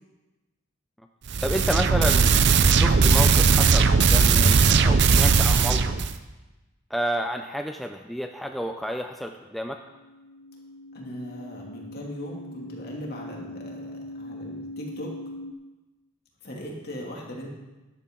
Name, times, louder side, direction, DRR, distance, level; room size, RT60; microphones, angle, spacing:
sound 1, 1.3-6.1, right 5 dB, 60° right, 0.6 m, -18 dB
voice 1, 1.4-2.4 2.7-5.9 6.9-9.8, equal, ahead, 4 dB, 0.4 m, -30 dB
sound 2, 9.8-15.5, left 1 dB, 75° left, 0.9 m, -41 dB
voice 2, 10.9-15.1 16.4-17.5, equal, 50° left, -2 dB, 2.6 m, -38 dB
13.0 x 11.5 x 3.8 m, 1.1 s
head